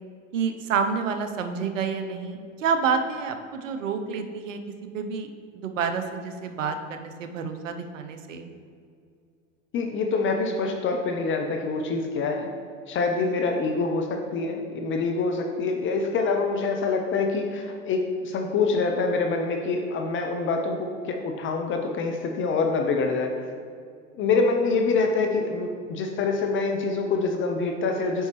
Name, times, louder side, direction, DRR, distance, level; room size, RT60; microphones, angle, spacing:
voice 1, 0.3-4.6 4.9-8.5, right 5 dB, 80° right, 7 dB, 0.8 m, -29 dB
voice 2, 9.7-12.5 12.9-23.3 24.2-28.3, left 4 dB, 30° left, 3 dB, 0.6 m, -25 dB
7.9 x 5.5 x 3.1 m, 2.2 s
hypercardioid pair, 90°, 38 cm